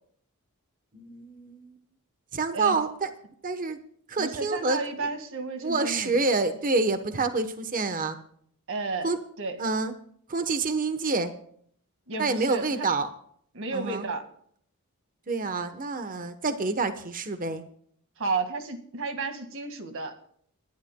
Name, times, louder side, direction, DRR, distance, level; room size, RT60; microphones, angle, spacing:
voice 1, 0.9-1.8 2.3-3.1 3.4-3.8 4.1-4.8 5.6-8.2 9.0-9.2 9.6-9.9 10.3-11.3 12.2-13.1 13.7-14.1 15.3-17.6, right 3 dB, 40° right, 9 dB, 1.0 m, -27 dB
voice 2, 4.2-6.2 8.7-9.1 9.4-9.6 12.1-12.9 13.5-14.3 18.2-20.2, right 3 dB, 65° right, 7 dB, 1.8 m, -32 dB
29.5 x 11.5 x 2.2 m, 0.62 s
head